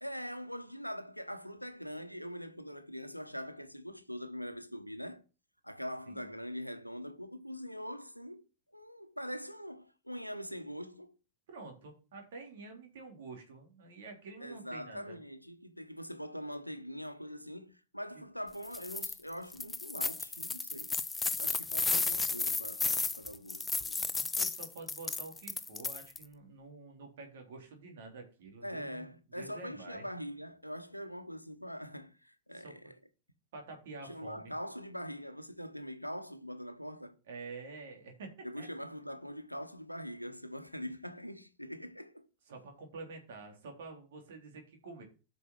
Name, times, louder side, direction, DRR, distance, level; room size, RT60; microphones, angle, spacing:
voice 1, 0.0-5.2 5.6-8.4 8.7-11.1 14.4-20.9 21.3-24.1 28.6-32.9 34.0-37.2 38.4-42.2, equal, 90° left, 1.1 m, -43 dB
voice 2, 11.5-15.2 18.1-18.2 21.8-21.9 24.1-30.1 32.5-32.7 33.5-34.5 37.3-38.7 42.5-45.0, right 3 dB, 60° right, 3.5 m, -48 dB
sound 1, 18.6-19.1 19.5-26.2, left 4 dB, 10° left, 0.7 m, -33 dB
8.4 x 6.2 x 5.9 m
figure-of-eight pair, 90°, 0 cm